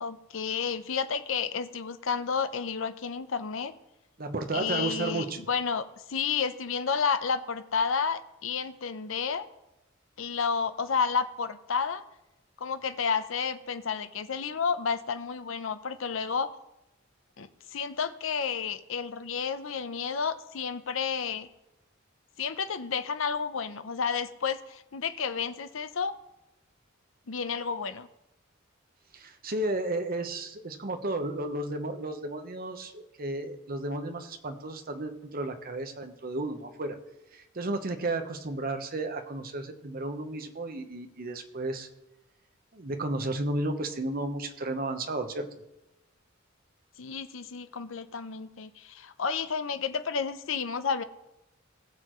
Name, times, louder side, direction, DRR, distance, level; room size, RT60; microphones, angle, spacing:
voice 1, 0.0-3.7 4.5-9.5 10.2-12.0 12.6-16.5 17.4-21.5 22.4-26.1 27.3-28.1 47.0-51.0, left 6 dB, 70° left, 11 dB, 0.6 m, -31 dB
voice 2, 4.2-5.4 29.1-37.0 37.3-41.9 42.7-45.5, right 2 dB, 45° right, 6 dB, 1.0 m, -33 dB
20.0 x 6.9 x 3.1 m, 0.92 s
head